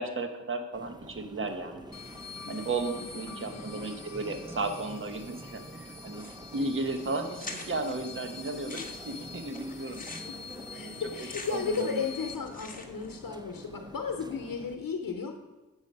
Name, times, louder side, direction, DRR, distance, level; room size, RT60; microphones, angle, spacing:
voice 1, 0.0-2.0 2.5-6.3 6.5-10.0 10.7-12.0, right 3 dB, 35° right, 6 dB, 1.0 m, -34 dB
sound 1, 0.7-14.8, right 1 dB, 10° right, 0.6 m, -47 dB
sound 2, 1.9-12.3, left 5 dB, 50° left, 0.8 m, -47 dB
voice 2, 3.3-3.6 9.7-15.4, left 5 dB, 80° left, 4 dB, 0.9 m, -35 dB
sound 3, 6.2-6.6 7.0-7.1 7.4-7.9 8.5-12.0 12.3-13.1, left 3 dB, 25° left, 1.1 m, -44 dB
8.0 x 6.5 x 5.3 m, 1.2 s
wide cardioid pair, 95°, 34 cm